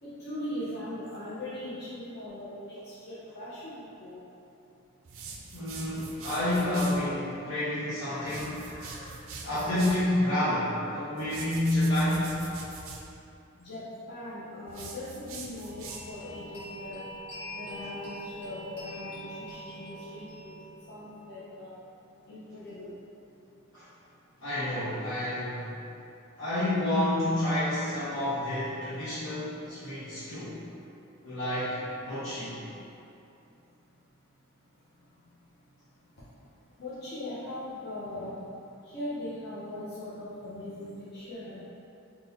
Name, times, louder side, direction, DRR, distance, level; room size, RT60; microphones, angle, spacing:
voice 1, 0.0-4.2 7.4-7.5 8.0-9.2 13.6-17.0 17.5-20.5 20.9-21.7 22.3-22.9 31.6-31.8 36.8-38.4 38.8-41.6, left 1 dB, 55° left, -11 dB, 0.7 m, -40 dB
sound 1, 5.1-7.0 8.2-10.1 11.2-13.1 14.7-16.3, right 4 dB, 75° right, 0.4 m, -43 dB
voice 2, 5.5-8.6 9.4-12.4 23.7-23.9 24.4-25.7 26.4-30.6 31.2-32.6, left 1 dB, 90° left, -14 dB, 0.9 m, -29 dB
sound 2, 15.6-21.3, equal, 25° left, 1.3 m, -44 dB
3.8 x 2.3 x 4.0 m, 2.8 s
head